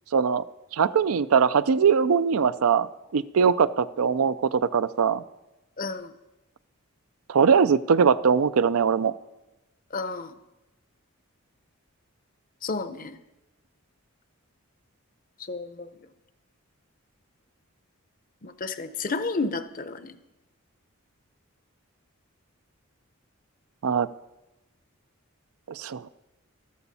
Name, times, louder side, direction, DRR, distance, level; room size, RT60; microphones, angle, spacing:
voice 1, 0.1-0.4 0.7-2.9 3.1-5.2 7.3-9.1 23.8-24.1 25.7-26.1, right 6 dB, 80° right, 14 dB, 0.4 m, -21 dB
voice 2, 5.8-6.1 9.9-10.3 12.6-13.2 15.4-15.9 18.4-20.2, left 3 dB, 40° left, 11 dB, 0.7 m, -31 dB
14.0 x 13.0 x 4.2 m, 0.99 s
head